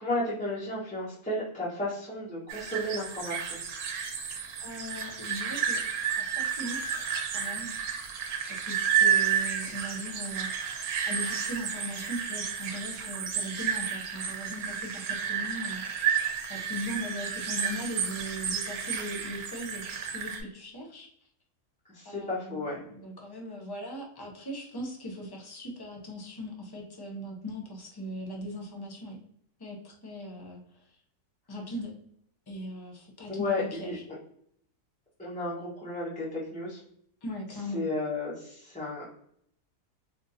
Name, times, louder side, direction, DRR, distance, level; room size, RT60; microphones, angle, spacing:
voice 1, 0.0-3.6 21.9-22.8 33.3-34.2 35.2-36.8 37.7-39.0, left 2 dB, 5° left, -9 dB, 0.8 m, -33 dB
sound 1, 2.5-20.4, right 8 dB, 70° right, 1.1 m, -31 dB
voice 2, 4.6-7.1 7.3-8.0 8.5-10.5 11.1-15.8 16.5-21.1 22.0-29.2 29.6-31.0 31.5-32.0 32.5-34.0 37.2-37.9, equal, 35° left, 0 dB, 0.3 m, -39 dB
4.4 x 2.6 x 2.6 m, 0.69 s
omnidirectional pair, 1.6 m